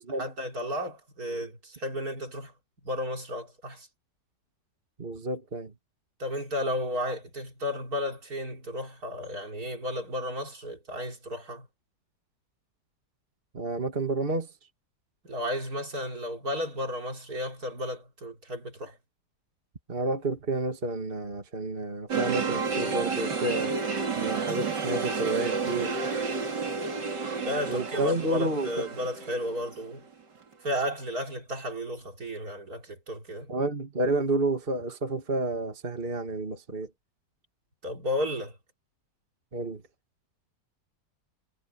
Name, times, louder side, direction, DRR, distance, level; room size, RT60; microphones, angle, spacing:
voice 1, 0.2-2.5 2.8-3.9 6.2-11.7 15.2-19.0 27.4-30.0 30.6-33.5 37.8-38.6, left 1 dB, 60° right, 4.4 m, -33 dB
voice 2, 5.0-5.7 13.5-14.5 19.9-23.7 24.2-25.9 27.7-28.7 33.5-36.9 39.5-39.8, right 2 dB, 30° right, 2.4 m, -30 dB
sound 1, 22.1-30.1 30.5-30.6, right 4 dB, 80° right, 3.5 m, -31 dB
omnidirectional pair, 1.8 m